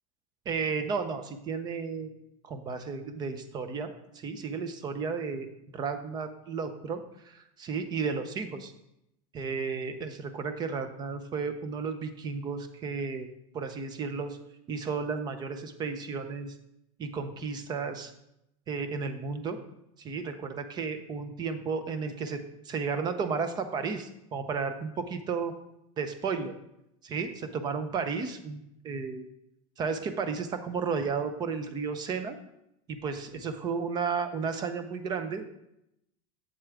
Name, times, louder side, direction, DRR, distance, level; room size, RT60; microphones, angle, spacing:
voice 1, 0.5-2.1 2.4-5.5 5.7-8.7 9.3-13.3 13.5-14.4 14.7-16.5 17.0-18.1 18.7-19.6 20.0-25.5 26.0-26.5 27.0-29.2 29.8-32.4 32.9-35.5, right 5 dB, 25° right, 10 dB, 0.6 m, -33 dB
8.0 x 7.1 x 3.5 m, 0.82 s
supercardioid pair, 165°, 17 cm